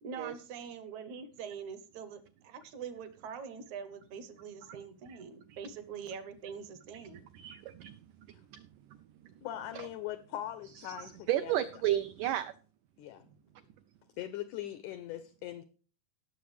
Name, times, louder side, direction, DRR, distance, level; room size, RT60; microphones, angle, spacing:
voice 1, 0.0-7.3 13.2-13.3, right 6 dB, 70° right, 11 dB, 1.9 m, -44 dB
voice 2, 6.9-9.5 9.7-9.9 10.7-12.5, right 12 dB, 90° right, 11 dB, 1.8 m, -35 dB
voice 3, 9.4-11.5 13.0-13.3 14.2-15.6, left 12 dB, 90° left, 12 dB, 1.7 m, -41 dB
17.5 x 6.8 x 3.2 m, 0.39 s
omnidirectional pair, 4.3 m